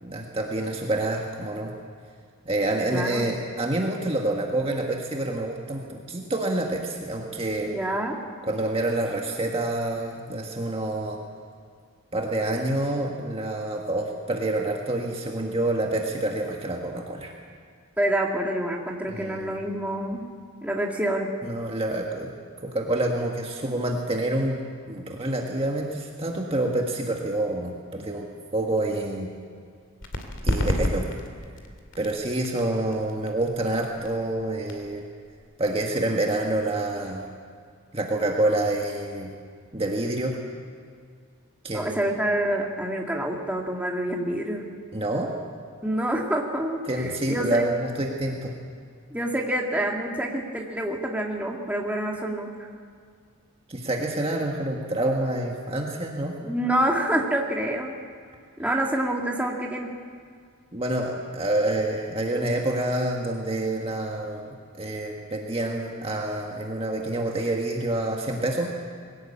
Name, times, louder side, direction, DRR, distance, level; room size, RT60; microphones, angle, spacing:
voice 1, 0.0-1.7 2.4-7.7 8.4-11.2 12.1-17.3 19.1-19.6 21.4-22.3 22.6-24.6 24.9-28.3 28.5-29.3 30.4-31.1 32.0-35.0 35.6-37.3 37.9-39.3 39.7-40.4 41.6-42.0 44.9-45.3 46.9-48.5 53.7-56.3 60.7-64.4 64.8-68.7, right 1 dB, 25° right, 0 dB, 1.6 m, -27 dB
voice 2, 2.9-3.3 7.7-8.2 18.0-20.3 20.6-21.3 41.7-44.6 45.8-47.6 49.1-52.5 56.4-57.9 58.6-59.9, right 1 dB, 5° right, -1 dB, 2.0 m, -27 dB
sound 1, 30.0-37.3, left 1 dB, 55° left, 2.5 m, -32 dB
21.5 x 17.5 x 8.7 m, 2.1 s
head